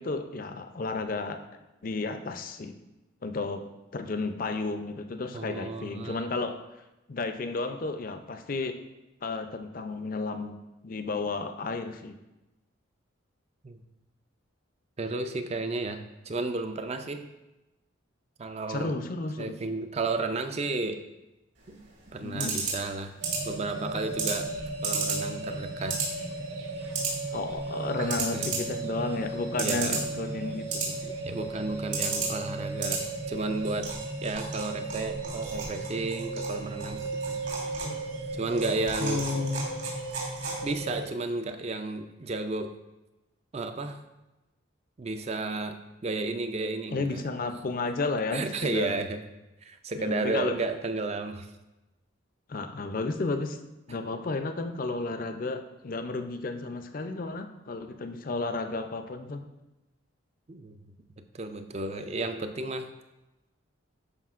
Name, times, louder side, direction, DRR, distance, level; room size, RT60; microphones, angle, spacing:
voice 1, 0.0-1.4 1.8-2.7 3.2-3.6 3.9-6.6 7.1-8.8 9.2-10.6 10.8-12.2 18.7-19.6 22.2-22.6 27.3-31.0 37.8-38.0 39.0-39.6 46.9-49.1 50.0-50.6 52.5-53.6 53.9-59.4, left 3 dB, 40° left, 7 dB, 0.4 m, -32 dB
voice 2, 5.3-6.3 13.6-13.8 15.0-17.3 18.4-18.9 19.4-21.0 21.7-23.1 23.5-24.5 24.8-26.0 28.1-28.5 29.6-30.0 31.0-33.0 33.3-33.9 34.2-37.4 38.3-39.3 40.6-42.7 43.5-44.0 45.0-47.2 48.3-49.2 49.6-51.5 60.5-60.8 61.3-62.9, right 3 dB, 30° right, 8 dB, 0.4 m, -33 dB
sound 1, 21.6-40.9, right 4 dB, 65° right, 2.6 m, -36 dB
sound 2, 23.2-41.0, right 2 dB, 85° right, 1.1 m, -36 dB
11.5 x 4.9 x 2.4 m, 1.0 s
head